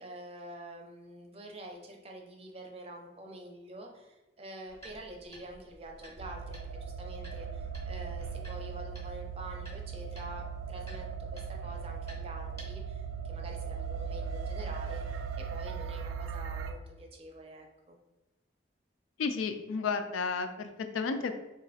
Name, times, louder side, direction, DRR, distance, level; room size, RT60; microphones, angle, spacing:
voice 1, 0.0-18.0, right 1 dB, 30° right, 1 dB, 0.5 m, -47 dB
sound 1, 4.7-12.6, equal, 15° left, 0.7 m, -52 dB
sound 2, 6.2-16.7, right 6 dB, 85° right, 0.3 m, -38 dB
voice 2, 19.2-21.4, left 5 dB, 90° left, 7 dB, 0.4 m, -32 dB
3.1 x 2.4 x 4.1 m, 1.1 s
head